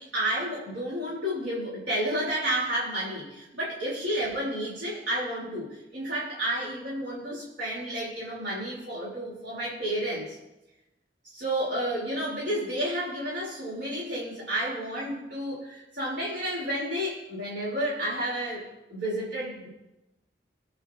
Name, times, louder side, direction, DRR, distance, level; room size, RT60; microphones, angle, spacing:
voice 1, 0.0-10.4 11.2-19.7, right 1 dB, 75° right, -5 dB, 3.0 m, -31 dB
22.0 x 8.1 x 2.6 m, 0.99 s
head